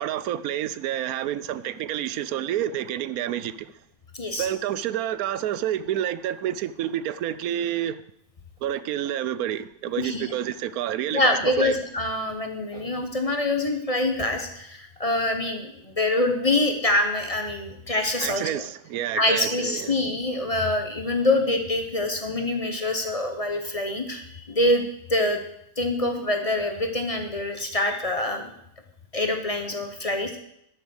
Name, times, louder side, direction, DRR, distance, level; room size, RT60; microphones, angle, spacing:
voice 1, 0.0-3.7 4.4-8.0 8.6-11.7 18.2-20.0, right 11 dB, 85° right, 1.1 m, -29 dB
voice 2, 4.1-4.5 10.0-10.3 11.1-18.6 19.1-25.4 25.8-28.5 29.1-30.3, left 2 dB, 25° left, 1.1 m, -25 dB
12.0 x 6.6 x 6.4 m
omnidirectional pair, 1.5 m